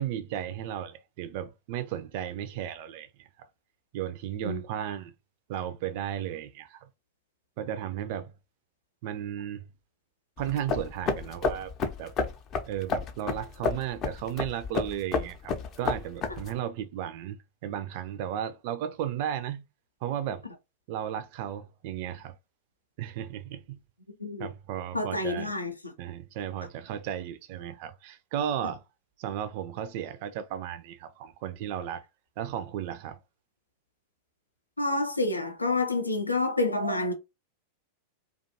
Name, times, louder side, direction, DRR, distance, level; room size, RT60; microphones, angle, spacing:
voice 1, 0.0-3.3 3.9-5.1 5.5-6.9 7.6-8.3 9.0-9.6 10.4-11.7 12.0-12.1 12.7-17.4 17.6-19.6 20.0-20.4 20.9-22.3 23.0-23.8 24.4-25.5 26.0-28.8 29.2-32.0 32.4-33.2, right 10 dB, 45° right, 0.3 m, -34 dB
sound 1, 10.4-16.6, left 5 dB, 35° left, 0.5 m, -31 dB
voice 2, 24.9-25.9 34.8-37.1, left 2 dB, 85° left, 0.5 m, -28 dB
2.4 x 2.3 x 2.7 m
figure-of-eight pair, 90°, 0 cm